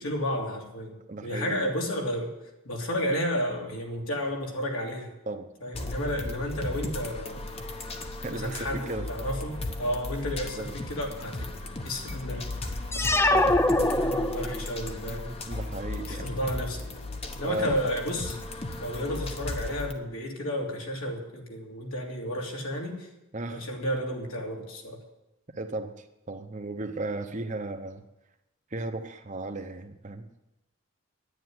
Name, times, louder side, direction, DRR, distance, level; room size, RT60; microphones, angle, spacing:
voice 1, 0.0-2.3 2.6-5.1 5.6-7.5 8.3-11.4 11.8-12.4 13.1-15.4 16.1-16.8 17.4-18.4 18.8-23.1 23.5-25.0, equal, 75° left, 0 dB, 3.1 m, -32 dB
voice 2, 1.1-1.6 5.3-5.5 8.2-9.1 10.6-10.7 13.3-13.6 15.5-16.4 17.4-17.8 23.3-23.6 25.5-28.0 28.7-30.3, right 2 dB, 35° right, 7 dB, 0.9 m, -35 dB
sound 1, 5.7-19.9, left 2 dB, 25° left, 1.0 m, -36 dB
sound 2, 12.9-14.8, left 1 dB, 10° left, 0.5 m, -23 dB
10.5 x 10.0 x 9.6 m, 0.95 s
head